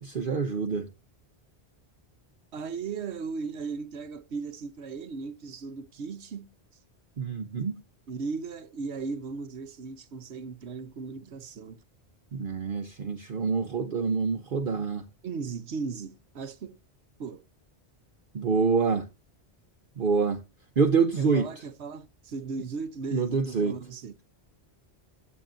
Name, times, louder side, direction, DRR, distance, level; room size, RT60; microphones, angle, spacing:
voice 1, 0.0-0.9 7.2-7.7 12.3-15.0 18.3-19.1 20.0-20.4 20.8-21.5 23.1-23.7, right 5 dB, 55° right, 1.0 m, -26 dB
voice 2, 2.5-6.5 8.1-11.8 15.2-16.8 17.2-17.5 21.2-24.1, right 5 dB, 85° right, 1.2 m, -37 dB
16.5 x 8.3 x 2.6 m
omnidirectional pair, 1.1 m